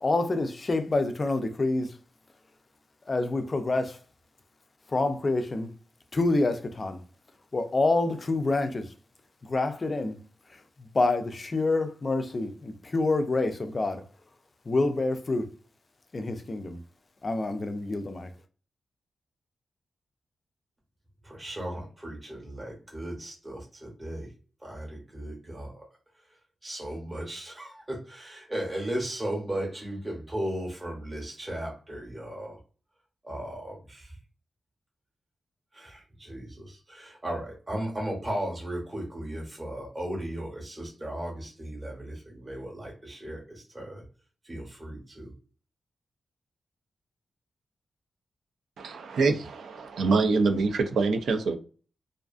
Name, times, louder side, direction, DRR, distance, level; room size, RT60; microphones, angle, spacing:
voice 1, 0.0-2.0 3.1-4.0 4.9-5.7 6.1-7.0 7.5-8.9 9.4-10.2 10.8-14.0 14.7-15.5 16.1-16.8 17.2-18.3, left 2 dB, 30° left, 0.3 m, -27 dB
voice 2, 21.2-24.3 24.6-25.9 26.6-32.6 33.2-34.2 35.7-44.0 44.4-45.3, right 1 dB, 15° right, 0.8 m, -36 dB
voice 3, 48.8-51.6, right 4 dB, 85° right, 0.4 m, -25 dB
2.4 x 2.4 x 2.4 m
wide cardioid pair, 155°, 0 cm